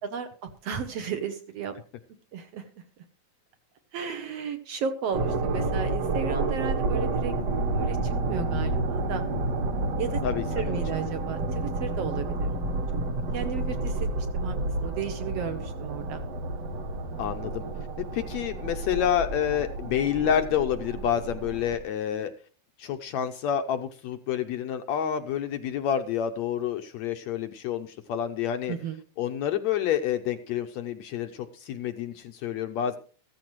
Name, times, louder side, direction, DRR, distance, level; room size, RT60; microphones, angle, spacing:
voice 1, 0.0-1.7 2.3-2.7 3.9-7.3 7.7-9.2 10.0-10.2 10.5-12.5 13.3-14.6 14.8-16.2 28.7-29.0, right 7 dB, 75° right, 9 dB, 1.5 m, -34 dB
sound 1, 5.1-21.8, right 2 dB, 55° right, 2.4 m, -30 dB
voice 2, 10.2-10.8 17.2-17.6 18.0-22.3 22.8-28.7 29.2-33.0, left 9 dB, 80° left, 8 dB, 1.6 m, -28 dB
15.0 x 15.0 x 3.1 m, 0.37 s
omnidirectional pair, 4.0 m